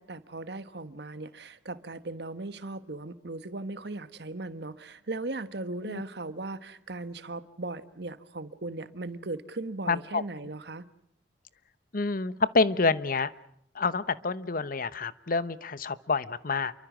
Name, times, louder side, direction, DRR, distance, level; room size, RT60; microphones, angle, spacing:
voice 1, 0.0-10.8, right 2 dB, 70° right, 1.3 m, -38 dB
voice 2, 9.9-10.2 11.9-13.3 13.7-16.7, left 4 dB, 55° left, 0.9 m, -28 dB
28.5 x 24.0 x 6.2 m
head